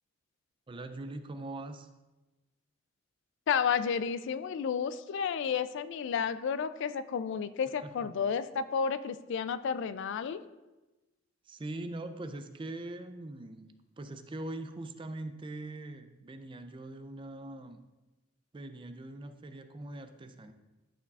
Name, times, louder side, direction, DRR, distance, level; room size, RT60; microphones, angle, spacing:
voice 1, 0.7-1.9 7.8-8.2 11.5-17.8 18.5-20.5, right 2 dB, 25° right, 9 dB, 0.4 m, -42 dB
voice 2, 3.5-10.4, left 6 dB, 60° left, 14 dB, 0.3 m, -31 dB
11.5 x 4.6 x 2.4 m, 1.1 s
head